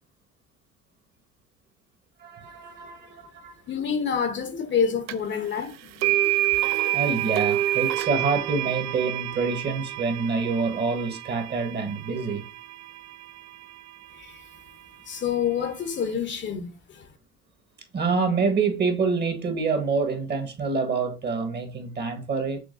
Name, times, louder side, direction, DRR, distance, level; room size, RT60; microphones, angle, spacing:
voice 1, 2.2-3.5 6.9-12.4 17.9-22.6, right 4 dB, 35° right, 1.2 m, -26 dB
voice 2, 3.7-6.5 14.1-14.5 15.1-17.1, left 7 dB, 40° left, 0.8 m, -28 dB
sound 1, 5.1-5.2 6.0-14.0, right 15 dB, 65° right, 0.4 m, -28 dB
6.2 x 2.3 x 2.5 m
supercardioid pair, 90°, 30 cm